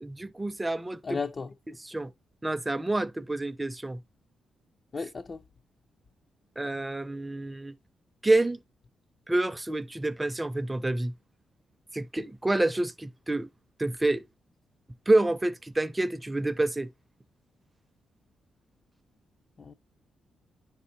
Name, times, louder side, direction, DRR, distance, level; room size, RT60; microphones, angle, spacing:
voice 1, 0.0-1.2 1.7-2.1 2.4-4.0 6.6-7.7 8.2-8.6 9.3-11.1 11.9-13.5 13.8-14.2 15.1-16.9, right 2 dB, 15° right, 0.5 m, -28 dB
voice 2, 1.0-1.5 4.9-5.4 19.6-19.7, left 4 dB, 40° left, 0.4 m, -34 dB
9.7 x 5.4 x 2.6 m
cardioid pair, 85°, 0 cm